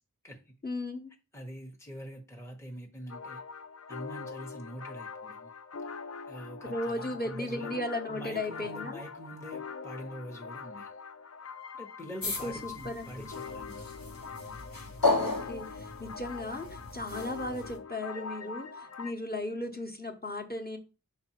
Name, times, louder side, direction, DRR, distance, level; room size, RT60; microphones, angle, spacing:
voice 1, 0.6-1.1 6.6-9.0 12.4-13.3 15.2-20.8, left 1 dB, 25° left, 1.1 m, -36 dB
voice 2, 1.3-3.4 3.9-5.5 6.3-7.8 8.1-11.0 11.7-14.1, equal, 10° left, 0.9 m, -44 dB
sound 1, 3.1-19.1, left 5 dB, 45° left, 0.5 m, -43 dB
sound 2, 12.2-17.8, left 3 dB, 75° left, 1.2 m, -34 dB
5.3 x 4.0 x 4.5 m
wide cardioid pair, 45°, 35 cm